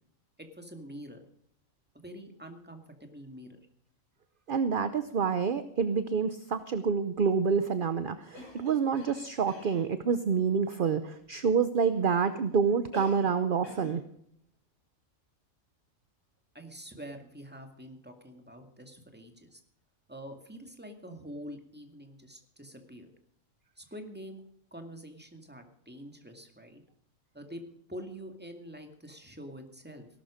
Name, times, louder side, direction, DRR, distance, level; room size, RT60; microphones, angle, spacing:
voice 1, 0.4-1.2 1.9-3.6 16.5-19.6 20.1-23.1 23.8-24.4 24.7-26.8 27.3-27.6 27.9-30.1, equal, 5° right, 5 dB, 2.1 m, -46 dB
voice 2, 4.5-14.0, right 6 dB, 45° right, 12 dB, 0.8 m, -27 dB
Cough, 8.3-9.9 12.9-13.4 13.6-14.0, left 1 dB, 55° left, 6.5 m, -46 dB
17.5 x 12.5 x 5.1 m, 0.70 s
omnidirectional pair, 1.4 m